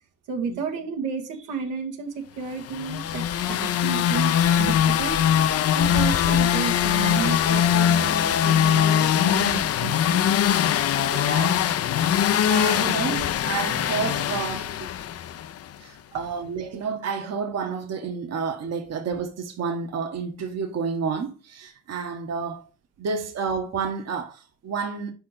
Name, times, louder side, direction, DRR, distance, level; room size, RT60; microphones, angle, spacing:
voice 1, 0.3-4.3 4.6-5.3 5.7-10.4 16.1-16.3, right 6 dB, 90° right, 1.2 m, -32 dB
sound 1, 2.7-15.6, left 10 dB, 55° left, 0.5 m, -22 dB
voice 2, 11.1-11.7 12.5-14.9 15.8-22.7 23.0-25.1, right 5 dB, 60° right, 1.1 m, -30 dB
4.9 x 4.3 x 5.5 m
cardioid pair, 90°, 30 cm